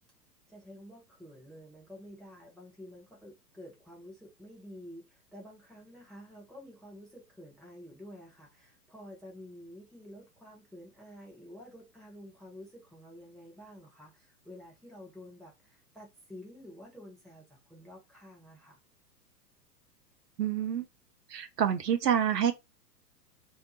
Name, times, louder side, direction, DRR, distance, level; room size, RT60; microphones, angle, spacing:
voice 1, 0.5-18.8, equal, ahead, 0.5 m, -50 dB
voice 2, 20.4-20.9 21.3-22.5, right 9 dB, 70° right, 0.7 m, -27 dB
2.8 x 2.1 x 4.0 m
figure-of-eight pair, 105°, 50 cm